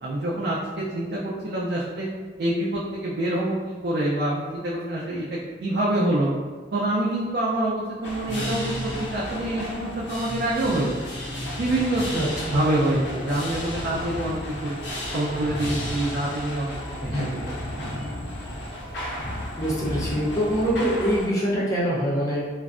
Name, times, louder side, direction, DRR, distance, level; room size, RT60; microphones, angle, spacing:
voice 1, 0.0-2.1 2.4-6.3 6.7-10.9 11.6-12.1 12.4-14.7 15.1-16.7 17.0-17.8, right 1 dB, 60° right, -6 dB, 0.4 m, -26 dB
sound 1, 8.0-21.3, left 1 dB, 90° left, 0.7 m, -33 dB
voice 2, 12.1-12.6 17.1-17.3 19.6-22.4, equal, 20° left, -7 dB, 0.5 m, -24 dB
2.5 x 2.1 x 2.3 m, 1.5 s
head